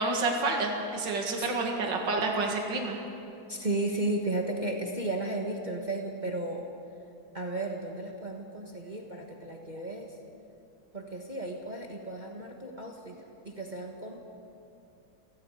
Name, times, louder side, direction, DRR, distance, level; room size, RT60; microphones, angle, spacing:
voice 1, 0.0-3.0, right 3 dB, 60° right, 1 dB, 2.7 m, -29 dB
voice 2, 3.5-6.6 7.3-10.1 10.9-13.2 13.4-14.2, right 2 dB, 25° right, 1 dB, 1.5 m, -34 dB
30.0 x 18.0 x 4.9 m, 2.7 s
omnidirectional pair, 2.2 m